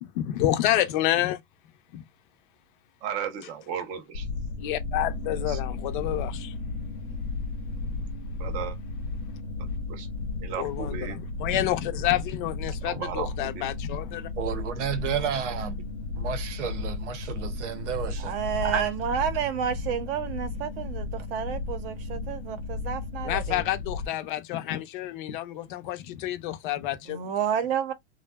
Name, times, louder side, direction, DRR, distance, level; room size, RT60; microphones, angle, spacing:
voice 1, 0.1-1.4 4.6-6.5 10.6-14.3 23.2-27.3, left 13 dB, 45° left, 0.5 m, -29 dB
voice 2, 3.0-4.3 5.3-5.6 8.4-8.8 9.6-10.1 10.4-11.2 12.8-13.7, right 8 dB, 25° right, 0.4 m, -35 dB
sound 1, 4.1-24.1, left 3 dB, 90° left, 0.8 m, -34 dB
voice 3, 14.4-15.8 16.1-18.3 18.6-18.9, right 8 dB, 90° right, 0.8 m, -31 dB
voice 4, 18.2-23.6 27.1-27.9, right 8 dB, 55° right, 0.7 m, -30 dB
2.6 x 2.1 x 2.2 m
supercardioid pair, 150°, 35 cm